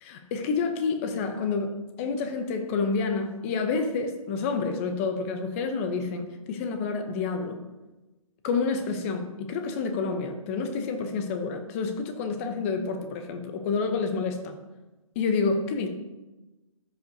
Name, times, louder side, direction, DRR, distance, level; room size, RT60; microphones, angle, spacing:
voice 1, 0.0-7.6 8.4-14.6 15.2-15.9, left 4 dB, 25° left, 7 dB, 0.7 m, -29 dB
13.0 x 5.3 x 2.7 m, 1.1 s
hypercardioid pair, 145°, 18 cm